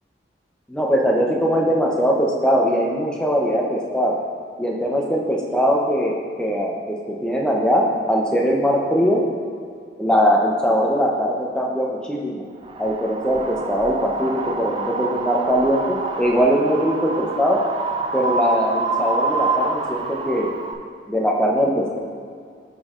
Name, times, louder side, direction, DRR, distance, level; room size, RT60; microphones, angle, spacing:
voice 1, 0.7-4.2 4.6-9.2 10.0-12.5 12.8-17.6 18.1-20.5 21.1-22.0, equal, 5° left, -2 dB, 0.6 m, -21 dB
Wind, 12.6-20.7, right 3 dB, 25° right, 0.3 m, -27 dB
9.5 x 5.3 x 2.5 m, 2.2 s
head